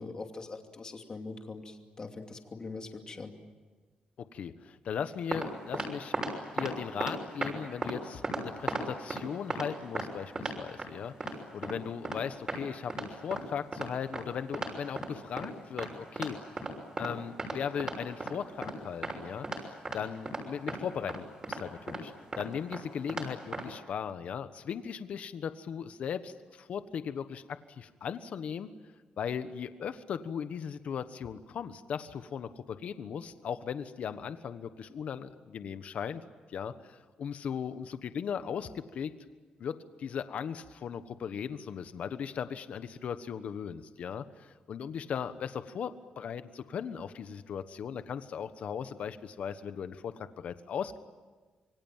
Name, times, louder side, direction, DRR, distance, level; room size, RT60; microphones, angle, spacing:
voice 1, 0.0-3.3, left 3 dB, 30° left, 4 dB, 2.7 m, -42 dB
voice 2, 4.3-6.1 6.5-16.6 17.0-28.7 29.2-36.2 36.5-39.1 39.6-51.0, left 7 dB, 60° left, 11 dB, 1.3 m, -38 dB
sound 1, 5.0-5.5 5.7-6.3 6.6-6.7 7.0-7.5 7.8-8.0 8.2-9.2 9.5-9.7 9.9-10.1 10.3-10.9 11.2-11.3 11.6-11.7 12.0-12.2 12.5-12.6 12.9-13.0 13.3-13.4 13.7-13.9 14.1-14.2 14.5-15.1 15.4-15.5 15.8-15.9 16.2-16.3 16.6-17.1 17.4-18.3 18.6-18.7 19.0-19.2 19.4-19.6 19.8-20.0 20.2-20.4 20.7-20.8 21.1-21.2 21.4-21.6 21.9-22.0 22.3-22.4 22.7-22.8 23.1-23.3 23.5-23.6, right 2 dB, 25° right, 6.3 m, -35 dB
27.0 x 24.0 x 9.1 m, 1.4 s
wide cardioid pair, 145°, 3 cm